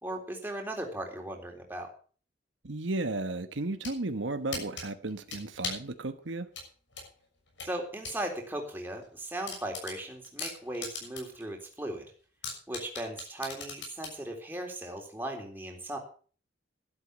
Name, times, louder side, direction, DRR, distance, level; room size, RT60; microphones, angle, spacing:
voice 1, 0.0-1.9 7.6-12.1 12.7-16.0, right 1 dB, 10° right, 3.6 m, -37 dB
voice 2, 2.6-6.5, right 2 dB, 90° right, 1.2 m, -34 dB
sound 1, 3.5-4.0 4.5-5.9 6.5-8.2 8.6-8.7 9.0-9.1 9.5-11.4 11.8-11.9 12.4-14.2, left 4 dB, 80° left, 6.6 m, -39 dB
12.5 x 12.0 x 6.1 m
head